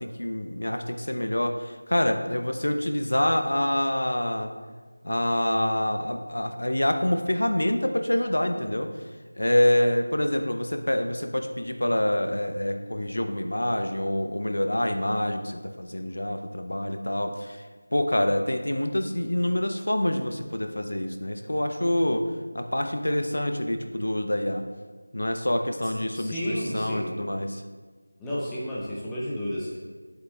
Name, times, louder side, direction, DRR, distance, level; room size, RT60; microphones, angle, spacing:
voice 1, 0.0-4.5 5.0-8.9 9.4-17.6 17.9-24.6 25.1-27.6, left 1 dB, 80° left, 6 dB, 0.8 m, -26 dB
voice 2, 26.1-27.1 28.2-29.8, equal, 5° left, -8 dB, 0.7 m, -31 dB
8.3 x 8.1 x 2.4 m, 1.4 s
figure-of-eight pair, 175°, 0 cm